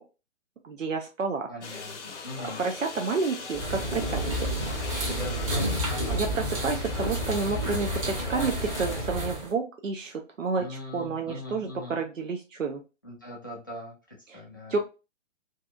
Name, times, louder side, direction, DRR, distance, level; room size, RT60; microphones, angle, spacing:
voice 1, 0.6-1.5 2.4-4.5 6.1-12.8 14.3-14.4 14.7-14.8, right 4 dB, 85° right, 3 dB, 0.5 m, -30 dB
voice 2, 1.5-2.6 5.1-6.2 10.5-12.0 13.0-14.0 14.3-14.8, left 2 dB, 20° left, -4 dB, 0.4 m, -41 dB
sound 1, 1.6-9.0, left 4 dB, 65° left, 0.6 m, -40 dB
sound 2, 3.5-9.5, equal, 25° right, 0.7 m, -30 dB
2.6 x 2.4 x 2.3 m, 0.30 s
figure-of-eight pair, 130°, 38 cm